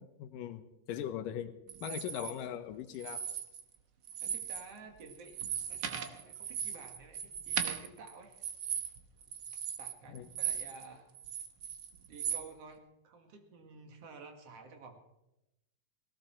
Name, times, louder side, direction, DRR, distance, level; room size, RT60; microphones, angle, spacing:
voice 1, 0.0-1.5 1.8-3.2 10.1-10.3, left 10 dB, 90° left, 10 dB, 2.6 m, -40 dB
sound 1, 1.7-2.3 2.9-3.8 4.0-4.7 5.0-10.9 11.1-12.4, right 8 dB, 70° right, 1.0 m, -38 dB
voice 2, 4.2-5.4 5.7-8.4 9.8-11.1 12.1-15.0, right 4 dB, 50° right, 5 dB, 2.8 m, -52 dB
18.0 x 18.0 x 4.5 m, 0.90 s
omnidirectional pair, 3.7 m